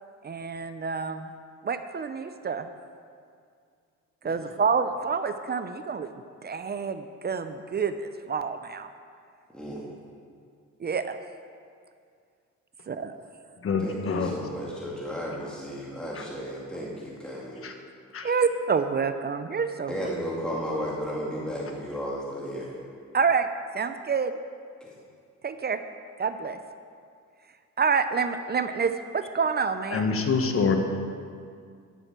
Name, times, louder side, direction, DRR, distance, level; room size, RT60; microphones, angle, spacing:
voice 1, 0.2-1.3 1.6-2.7 4.2-6.1 6.4-8.9 10.8-11.2 12.9-13.1 18.2-20.1 23.1-23.5 23.7-24.3 25.4-25.8 26.2-26.6 27.8-30.1, right 5 dB, 35° right, 9 dB, 0.6 m, -28 dB
voice 2, 9.5-9.9 13.8-17.7 19.9-22.7 24.8-24.9, equal, 5° left, -5 dB, 2.1 m, -34 dB
voice 3, 13.6-14.3 16.1-16.2 17.6-17.7 18.1-18.3 29.9-30.8, left 5 dB, 45° left, 5 dB, 1.3 m, -26 dB
11.0 x 6.3 x 7.5 m, 2.2 s
cardioid pair, 90°, 30 cm